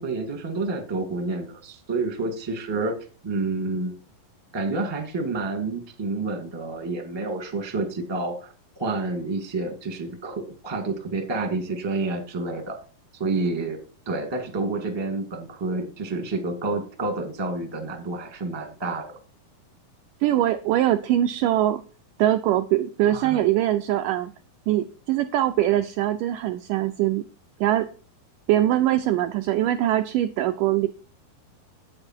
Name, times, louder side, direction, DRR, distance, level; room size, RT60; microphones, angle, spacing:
voice 1, 0.0-3.0 3.2-3.9 4.5-8.5 8.8-12.8 13.2-13.8 14.0-19.2 23.1-23.4, right 3 dB, 15° right, 4 dB, 1.1 m, -29 dB
voice 2, 20.2-21.8 22.2-24.3 24.7-27.2 27.6-27.9 28.5-30.9, right 13 dB, 80° right, 7 dB, 1.9 m, -22 dB
8.9 x 8.7 x 4.5 m, 0.37 s
omnidirectional pair, 4.3 m